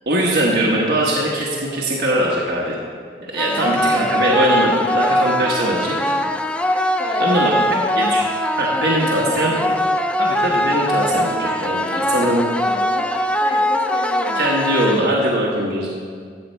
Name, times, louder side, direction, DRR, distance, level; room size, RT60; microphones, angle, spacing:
voice 1, 0.1-2.8 3.3-6.2 7.2-7.5 8.0-8.2 8.6-9.6 10.2-11.8 12.1-12.4 14.4-15.9, right 1 dB, 60° right, -4 dB, 1.2 m, -20 dB
sound 1, 3.4-15.4, left 1 dB, 5° left, 0.4 m, -21 dB
voice 2, 3.5-3.8 7.0-8.2 8.7-10.0 11.9-12.3 12.6-13.1 13.4-14.6, left 2 dB, 25° left, 1 dB, 1.0 m, -30 dB
13.5 x 7.6 x 4.5 m, 2.1 s
head